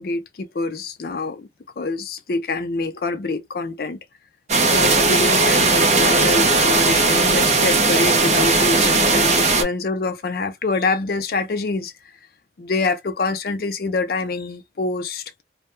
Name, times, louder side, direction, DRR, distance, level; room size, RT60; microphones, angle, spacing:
voice 1, 0.0-1.5 1.8-4.0 4.7-11.9 12.6-15.2, left 3 dB, 55° left, 0.4 m, -25 dB
sound 1, 4.5-9.6, right 3 dB, 35° right, 0.6 m, -17 dB
2.2 x 2.1 x 2.9 m
head